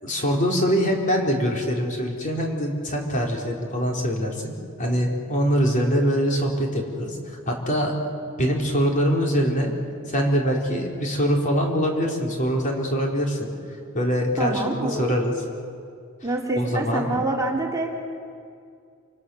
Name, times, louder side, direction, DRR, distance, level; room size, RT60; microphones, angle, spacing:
voice 1, 0.0-4.5 4.8-7.9 8.4-9.7 10.1-13.5 13.9-15.3 16.6-17.1, equal, 40° left, 0 dB, 4.1 m, -23 dB
voice 2, 14.4-15.2 16.2-17.9, right 2 dB, 15° right, -2 dB, 3.5 m, -26 dB
28.5 x 27.0 x 7.1 m, 2.3 s
head